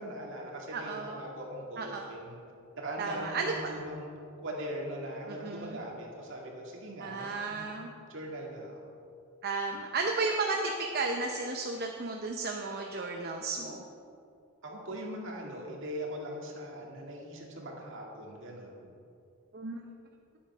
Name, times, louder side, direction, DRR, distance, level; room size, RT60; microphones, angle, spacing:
voice 1, 0.0-2.4 2.8-4.1 4.4-7.7 8.1-8.7 14.6-18.8, right 1 dB, 65° right, -1 dB, 2.2 m, -40 dB
voice 2, 0.7-1.2 1.8-2.0 3.0-3.7 5.3-5.8 7.0-7.9 9.4-13.8 19.5-19.8, right 3 dB, 50° right, 2 dB, 0.7 m, -33 dB
10.5 x 8.4 x 5.5 m, 2.5 s
head